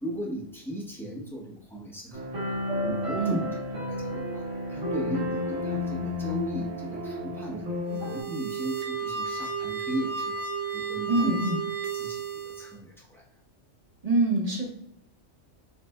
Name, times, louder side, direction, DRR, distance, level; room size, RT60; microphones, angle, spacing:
voice 1, 0.0-2.6 2.8-7.7 7.9-10.4 10.7-11.4 11.9-13.2, right 1 dB, ahead, -4 dB, 0.8 m, -37 dB
sound 1, 2.1-8.2, left 1 dB, 90° right, 1.9 m, -31 dB
sound 2, 7.9-12.8, right 5 dB, 65° right, 0.9 m, -33 dB
voice 2, 11.1-11.6 14.0-14.7, right 2 dB, 35° right, 0 dB, 0.7 m, -25 dB
5.7 x 3.3 x 2.2 m, 0.67 s
omnidirectional pair, 1.3 m